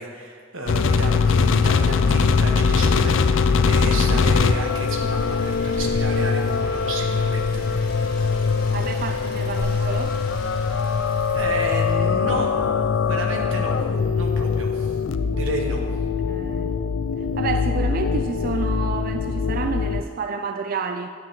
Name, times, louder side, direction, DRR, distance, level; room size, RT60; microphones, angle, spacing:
voice 1, 0.0-7.6 11.3-12.6 13.0-13.7 14.1-15.0 15.3-15.8, right 1 dB, 90° right, 1 dB, 1.4 m, -31 dB
sound 1, 0.7-20.0, left 5 dB, 80° left, 0.5 m, -22 dB
sound 2, 2.6-12.0, equal, 50° left, 2.0 m, -37 dB
voice 2, 8.7-10.1 15.8-15.9 16.3-16.8 17.4-21.1, right 5 dB, 45° right, 6 dB, 0.4 m, -29 dB
9.8 x 9.7 x 3.7 m, 2.1 s
head